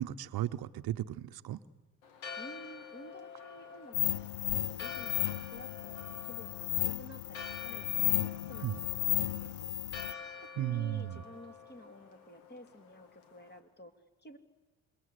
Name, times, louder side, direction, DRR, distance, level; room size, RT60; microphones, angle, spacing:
voice 1, 0.0-1.6 8.6-8.8 10.6-11.2, right 13 dB, 60° right, 13 dB, 0.9 m, -35 dB
Church bell, 2.0-13.6, left 6 dB, 85° left, 2.8 m, -48 dB
voice 2, 2.4-8.7 9.0-9.7 10.4-14.4, equal, 25° left, 6 dB, 2.8 m, -52 dB
sound 1, 3.9-10.1, left 15 dB, 70° left, 0.8 m, -34 dB
27.0 x 22.5 x 8.4 m, 1.3 s
hypercardioid pair, 55°, 42 cm